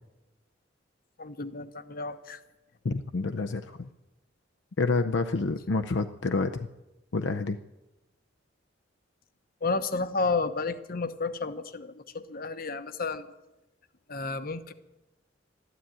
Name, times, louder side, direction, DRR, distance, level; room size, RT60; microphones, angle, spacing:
voice 1, 1.2-2.4 9.6-13.3 14.1-14.7, left 3 dB, 50° left, 12 dB, 1.0 m, -31 dB
voice 2, 2.8-3.9 4.8-6.7 7.1-7.6, left 3 dB, 70° left, 7 dB, 0.6 m, -28 dB
12.5 x 12.5 x 8.9 m, 1.0 s
head